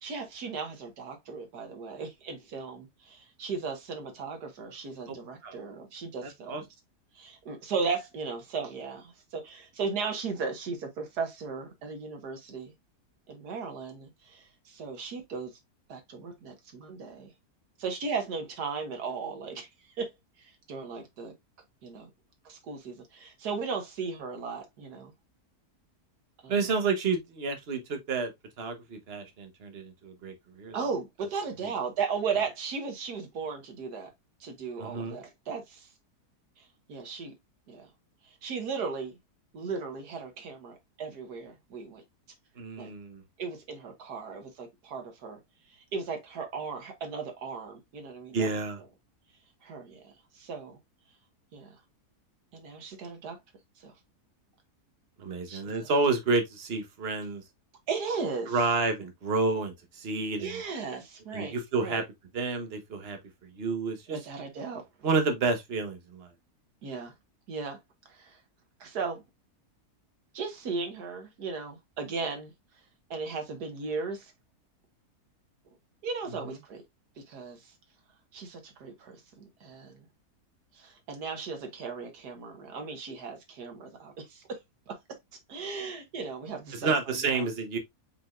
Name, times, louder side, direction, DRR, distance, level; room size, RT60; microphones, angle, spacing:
voice 1, 0.0-6.7 7.2-12.7 13.3-15.5 15.9-17.3 17.8-19.7 20.0-20.1 20.4-21.3 21.8-22.1 22.5-25.1 26.4-26.6 30.7-34.1 34.4-35.9 36.6-37.3 37.7-37.9 38.3-39.2 39.5-42.0 42.8-42.9 43.4-45.4 45.9-48.5 49.6-50.8 51.5-51.8 52.5-53.4 53.8-53.9 55.5-55.9 57.9-58.6 60.4-62.0 64.1-64.8 66.8-67.1 67.5-67.8 68.1-68.4 68.8-69.2 70.3-72.5 73.1-74.3 76.0-76.8 77.3-77.7 78.3-80.1 80.7-84.6 84.9-85.0 85.5-87.5, right 5 dB, 85° right, 1.8 m, -36 dB
voice 2, 6.2-6.6 26.5-28.3 28.6-30.8 31.6-31.7 34.8-35.2 42.6-43.2 48.3-48.8 55.2-57.4 58.5-60.6 61.3-62.0 62.3-64.2 65.0-66.3 76.4-76.6 86.8-87.8, right 4 dB, 45° right, 1.2 m, -30 dB
5.5 x 3.9 x 2.4 m
omnidirectional pair, 1.7 m